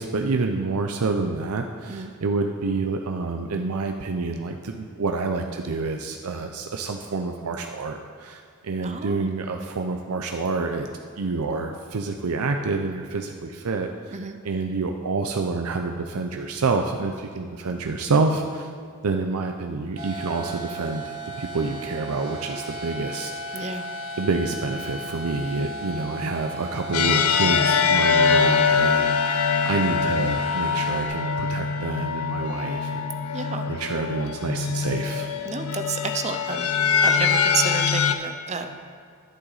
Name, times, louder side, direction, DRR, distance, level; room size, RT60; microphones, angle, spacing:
voice 1, 0.0-10.9 11.2-14.2 14.4-18.7 19.0-23.7 24.2-33.1 33.3-35.3, right 3 dB, 90° right, 4 dB, 0.6 m, -28 dB
voice 2, 8.8-9.3 14.1-14.4 17.7-17.8 23.5-23.9 33.3-33.7 35.4-36.7 37.0-38.7, right 5 dB, 30° right, 7 dB, 0.5 m, -30 dB
sound 1, 20.0-31.1, right 2 dB, 65° right, 2.0 m, -35 dB
sound 2, 26.9-38.1, left 6 dB, 80° left, 0.6 m, -23 dB
11.0 x 9.1 x 4.0 m, 2.2 s
head